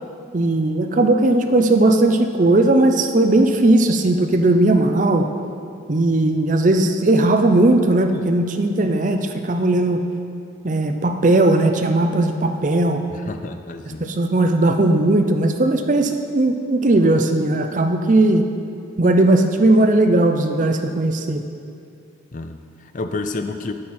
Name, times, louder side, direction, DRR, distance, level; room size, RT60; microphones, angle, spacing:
voice 1, 0.3-5.3 5.9-10.0 10.6-13.0 14.0-18.5 19.0-21.4, right 2 dB, 40° right, 6 dB, 0.5 m, -17 dB
voice 2, 13.1-14.1 22.3-23.7, left 3 dB, 40° left, 8 dB, 0.4 m, -30 dB
9.3 x 8.6 x 4.2 m, 2.4 s
head